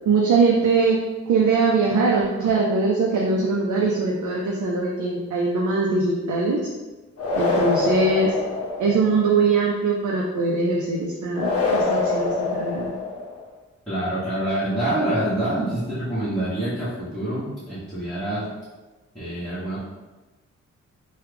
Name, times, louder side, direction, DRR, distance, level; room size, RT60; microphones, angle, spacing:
voice 1, 0.1-1.0 1.3-6.7 7.3-8.3 8.8-12.9, right 4 dB, 85° right, -3 dB, 0.5 m, -21 dB
sound 1, 7.2-9.2 11.3-13.4, left 3 dB, 55° left, 0.7 m, -25 dB
voice 2, 13.9-18.5 19.1-19.8, right 1 dB, 5° left, -16 dB, 1.1 m, -26 dB
3.1 x 2.3 x 3.3 m, 1.2 s
wide cardioid pair, 125°, 29 cm